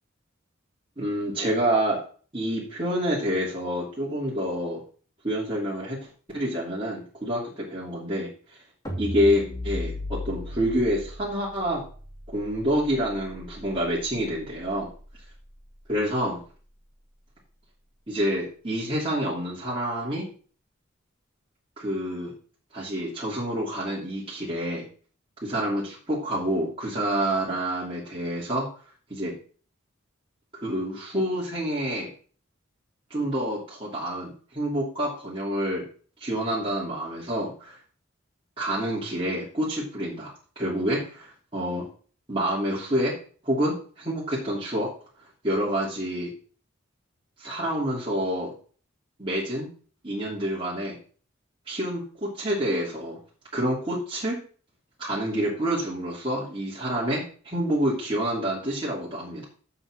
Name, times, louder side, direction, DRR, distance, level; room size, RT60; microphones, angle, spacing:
voice 1, 1.0-2.0 2.3-4.8 5.2-6.0 6.3-8.3 9.0-11.8 12.3-14.9 15.9-16.4 18.1-20.2 21.8-22.3 22.7-24.8 25.4-28.7 29.1-29.3 30.5-32.1 33.1-35.8 36.2-37.8 38.6-41.8 42.3-43.1 43.4-44.9 45.4-46.3 47.4-48.5 49.2-49.7 50.0-51.0 51.7-53.2 53.5-54.4 55.0-59.4, equal, 25° right, -7 dB, 2.8 m, -28 dB
sound 1, 8.9-15.2, left 1 dB, 15° left, 2.5 m, -37 dB
7.2 x 6.3 x 6.4 m, 0.41 s
head